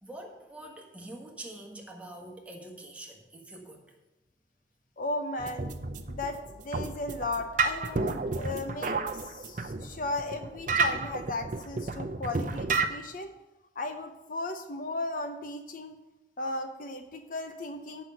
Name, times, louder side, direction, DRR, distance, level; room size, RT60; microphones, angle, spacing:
voice 1, 0.0-3.8, right 1 dB, 10° right, 0 dB, 1.5 m, -45 dB
voice 2, 5.0-5.7 6.1-13.3 13.8-16.0 16.4-18.0, left 2 dB, 50° left, 7 dB, 0.7 m, -36 dB
sound 1, 5.4-12.9, right 4 dB, 45° right, 0.6 m, -31 dB
8.0 x 5.7 x 7.6 m, 0.99 s
head